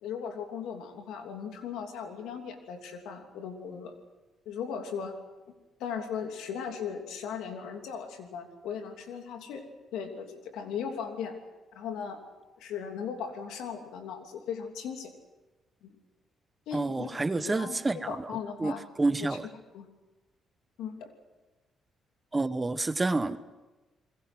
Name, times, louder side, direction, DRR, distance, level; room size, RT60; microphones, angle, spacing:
voice 1, 0.0-3.9 4.4-5.2 5.8-9.6 9.9-11.4 11.7-12.2 12.6-15.1 15.8-15.9 16.7-17.1 17.4-17.7 18.0-18.9 19.2-19.9 20.8-21.1, left 7 dB, 90° left, 5 dB, 3.0 m, -38 dB
voice 2, 16.7-18.2 18.6-19.5 22.3-23.4, right 3 dB, 20° right, 12 dB, 1.2 m, -29 dB
29.0 x 21.5 x 6.3 m, 1.1 s
cardioid pair, 90°, 0 cm